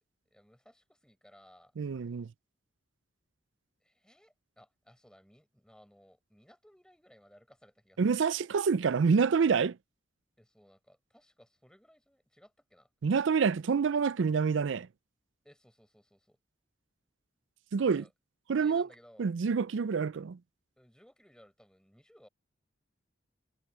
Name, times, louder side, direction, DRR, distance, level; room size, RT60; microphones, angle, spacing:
voice 1, 0.3-1.7 3.8-8.0 10.4-12.9 15.4-16.4 17.9-18.1 18.6-19.3 20.8-22.3, equal, 5° left, 5.2 m, -60 dB
voice 2, 1.8-2.3 8.0-9.8 13.0-14.9 17.7-18.0 18.5-18.9 19.2-20.4, right 5 dB, 70° right, 0.4 m, -27 dB
head